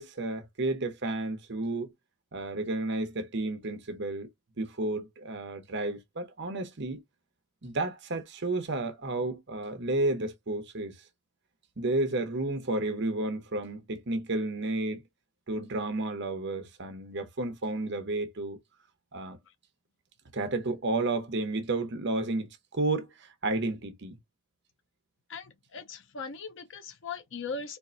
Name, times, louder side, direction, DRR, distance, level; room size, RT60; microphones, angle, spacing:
voice 1, 0.0-1.9 2.3-4.3 4.6-7.0 7.6-11.0 11.8-15.0 15.5-18.6 19.1-19.4 20.3-24.2, right 2 dB, 60° right, 0.9 m, -32 dB
voice 2, 25.7-27.8, left 4 dB, 65° left, 0.7 m, -38 dB
4.4 x 2.5 x 2.5 m
head